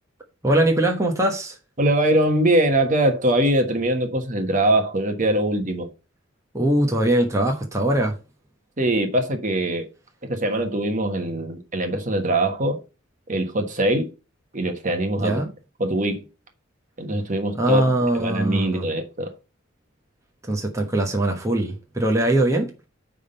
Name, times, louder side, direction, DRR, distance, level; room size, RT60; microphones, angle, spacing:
voice 1, 0.4-1.6 6.5-8.2 15.2-15.5 17.6-18.9 20.4-22.7, right 1 dB, 15° right, 1.1 m, -21 dB
voice 2, 1.8-5.9 8.8-9.9 10.3-12.8 13.3-14.1 14.5-15.4 15.8-16.2 17.0-17.8 18.1-19.3, right 1 dB, 40° right, 1.3 m, -22 dB
9.3 x 3.7 x 5.5 m
head